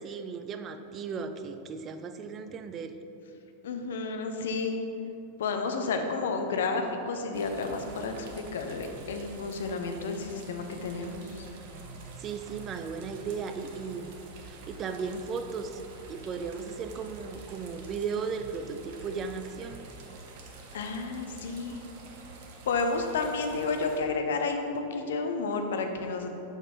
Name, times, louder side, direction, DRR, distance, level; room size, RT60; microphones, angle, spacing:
voice 1, 0.0-3.0 12.2-14.1 14.4-15.8 16.1-19.9, right 5 dB, 30° right, 8 dB, 0.4 m, -36 dB
voice 2, 3.6-4.8 5.4-11.5 20.7-21.8 22.7-26.3, left 4 dB, 60° left, 5 dB, 0.7 m, -31 dB
sound 1, 7.3-24.0, right 3 dB, 50° right, 0.9 m, -47 dB
7.1 x 5.8 x 3.9 m, 2.8 s
figure-of-eight pair, 90°, 0 cm